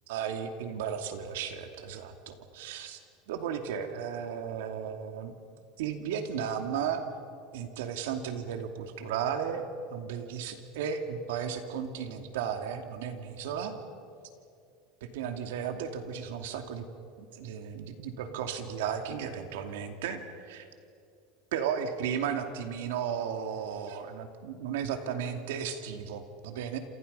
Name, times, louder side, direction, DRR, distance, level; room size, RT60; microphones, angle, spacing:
voice 1, 0.1-3.0 3.3-5.3 5.8-7.1 7.5-13.8 15.0-16.8 17.2-20.7 21.5-26.8, right 7 dB, 90° right, 6 dB, 2.6 m, -34 dB
29.0 x 27.5 x 5.6 m, 2.4 s
supercardioid pair, 155°, 0 cm